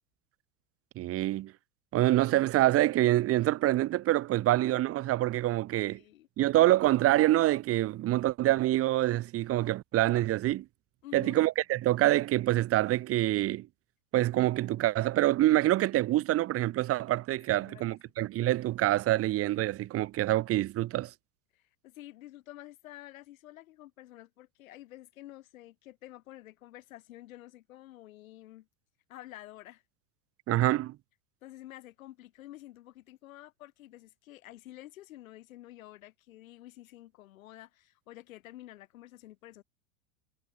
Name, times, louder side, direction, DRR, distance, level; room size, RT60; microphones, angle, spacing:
voice 1, 1.0-1.5 1.9-6.0 6.4-10.7 11.1-13.7 14.1-21.1 30.5-31.0, right 15 dB, 35° right, 1.2 m, -26 dB
voice 2, 5.9-6.3 11.0-11.4 17.5-18.0 21.5-28.7 29.1-29.8 31.4-39.6, left 15 dB, 75° left, 6.3 m, -50 dB
hypercardioid pair, 110°, 41 cm